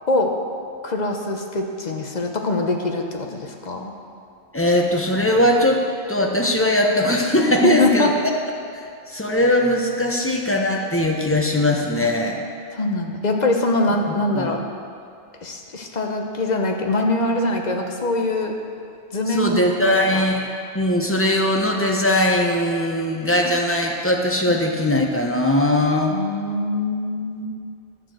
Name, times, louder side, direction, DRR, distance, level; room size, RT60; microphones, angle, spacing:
voice 1, 0.8-3.9 7.8-8.1 12.7-14.6 15.4-18.5 19.1-19.5 19.8-20.2 24.5-24.6 26.1-27.5, left 2 dB, 45° left, 2 dB, 1.0 m, -23 dB
voice 2, 4.5-8.1 9.1-12.4 14.1-14.5 19.3-20.5 20.7-26.2, left 1 dB, 15° left, 0 dB, 0.9 m, -20 dB
11.5 x 4.5 x 7.7 m, 2.4 s
omnidirectional pair, 1.1 m